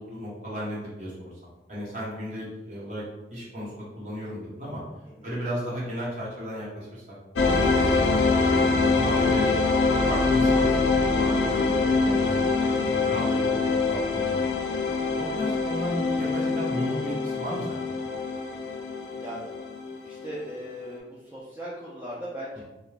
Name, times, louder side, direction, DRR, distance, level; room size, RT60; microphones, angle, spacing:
voice 1, 0.0-1.3 1.7-3.0 3.3-4.8 5.2-8.2 8.9-9.5 10.1-14.5 15.1-18.0, equal, 45° right, -6 dB, 0.9 m, -34 dB
voice 2, 5.0-5.4 19.1-19.5 20.0-22.6, equal, 10° right, -8 dB, 0.3 m, -38 dB
sound 1, 7.4-20.3, left 3 dB, 90° left, 0.4 m, -24 dB
2.3 x 2.1 x 3.2 m, 0.98 s
head